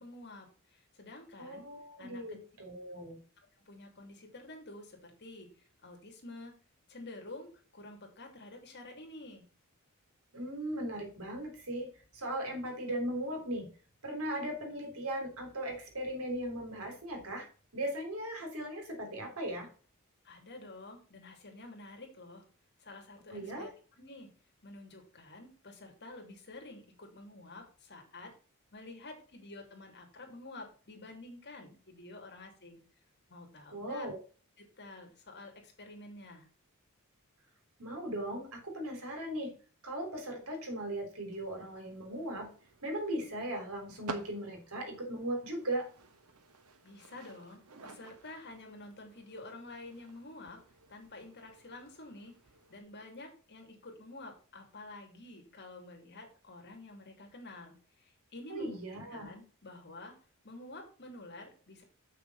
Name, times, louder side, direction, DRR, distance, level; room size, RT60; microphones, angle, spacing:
voice 1, 0.0-1.7 2.0-2.4 3.6-6.5 6.9-9.4 20.2-22.5 22.8-24.3 24.6-28.3 28.7-32.8 33.3-34.1 34.6-36.5 46.8-50.6 50.9-52.3 52.7-58.8 59.1-60.2 60.4-61.8, left 2 dB, 50° left, 2 dB, 2.8 m, -49 dB
voice 2, 1.4-3.2 10.3-13.7 14.0-17.5 17.7-19.7 23.3-23.7 33.7-34.2 37.8-39.5 39.8-42.5 42.8-45.9 58.5-59.3, right 1 dB, 75° right, 3 dB, 3.6 m, -38 dB
sound 1, 41.3-52.8, right 3 dB, 90° right, 1.3 m, -52 dB
7.6 x 6.2 x 4.1 m, 0.39 s
head